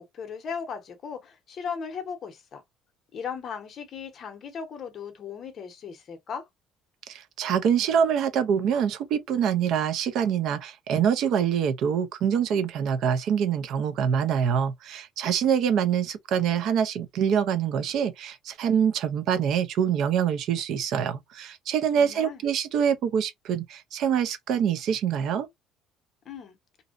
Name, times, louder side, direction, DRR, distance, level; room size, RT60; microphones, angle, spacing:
voice 1, 0.0-2.6 3.1-6.5 22.0-22.4 26.3-26.6, left 6 dB, 35° left, 0.7 m, -37 dB
voice 2, 7.1-25.5, right 8 dB, 55° right, 0.4 m, -25 dB
2.5 x 2.1 x 2.4 m
cardioid pair, 160°, 0 cm